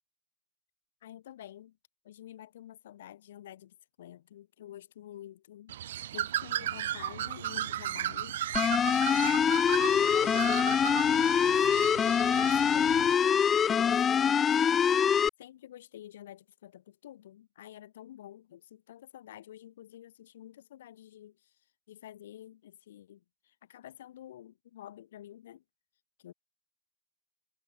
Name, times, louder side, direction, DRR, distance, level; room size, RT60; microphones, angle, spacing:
voice 1, 1.0-1.8 2.0-5.8 6.1-8.4 9.0-9.5 9.8-12.0 12.3-14.9 15.4-21.4 21.9-25.6 26.2-26.3, left 12 dB, 80° left, 5.9 m, -49 dB
Bird, 5.7-13.1, right 12 dB, 80° right, 1.1 m, -35 dB
sound 1, 8.5-15.3, left 7 dB, 35° left, 0.5 m, -25 dB
hypercardioid pair, 75°, 0 cm